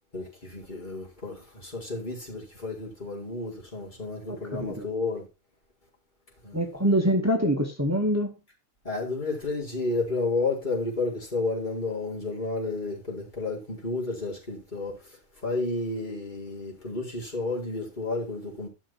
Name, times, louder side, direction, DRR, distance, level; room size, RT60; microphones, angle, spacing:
voice 1, 0.1-5.3 6.4-6.6 8.8-18.7, left 3 dB, 35° left, 4.9 m, -31 dB
voice 2, 4.3-4.9 6.5-8.3, equal, 10° right, 2.1 m, -25 dB
12.0 x 6.3 x 5.9 m
omnidirectional pair, 1.3 m